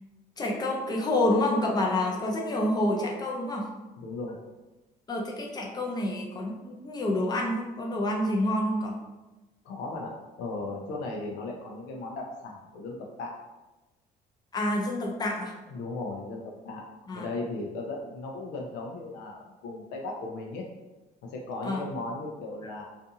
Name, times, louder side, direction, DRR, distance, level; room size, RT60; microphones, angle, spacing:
voice 1, 0.4-3.7 5.1-8.9 14.5-15.5 17.1-17.3 21.6-21.8, left 1 dB, 25° left, -1 dB, 0.6 m, -28 dB
voice 2, 4.0-4.4 9.6-13.4 15.7-16.9 17.1-20.6 21.2-22.8, left 2 dB, 90° left, 0 dB, 0.4 m, -36 dB
2.5 x 2.4 x 2.6 m, 1.1 s
cardioid pair, 110°, 17 cm